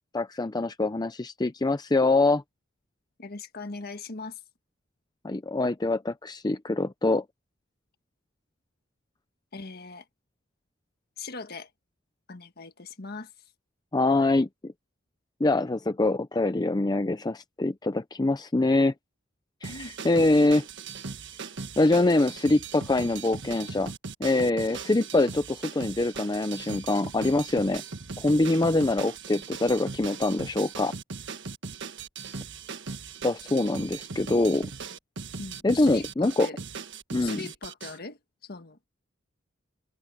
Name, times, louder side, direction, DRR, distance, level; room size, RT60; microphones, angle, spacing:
voice 1, 0.1-2.4 5.2-7.2 13.9-14.7 15.4-18.9 19.6-20.7 21.8-23.9 24.2-27.8 28.2-30.9 33.2-34.7 35.6-36.5 37.1-37.4, left 2 dB, 20° left, 0.5 m, -24 dB
voice 2, 3.2-4.4 9.5-10.1 11.2-11.7 12.3-13.5 19.7-19.9 35.4-36.6 37.2-38.9, left 4 dB, 50° left, 1.6 m, -40 dB
sound 1, 19.6-38.0, right 5 dB, 60° right, 1.5 m, -39 dB
head